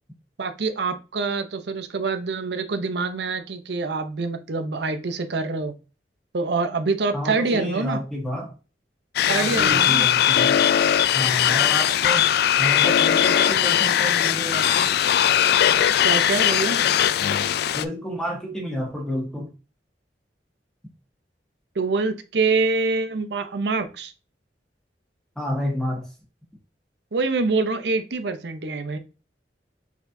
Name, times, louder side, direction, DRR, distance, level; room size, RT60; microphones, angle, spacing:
voice 1, 0.4-5.7 6.3-8.0 9.2-10.1 16.0-16.8 21.8-24.1 27.1-29.0, right 3 dB, 70° right, 0.7 m, -25 dB
voice 2, 7.1-8.5 9.3-10.7 11.1-12.3 12.6-15.0 17.7-19.5 25.3-26.1, equal, 5° left, 1.4 m, -30 dB
sound 1, 9.2-17.9, left 10 dB, 65° left, 0.3 m, -19 dB
4.3 x 4.1 x 2.6 m
head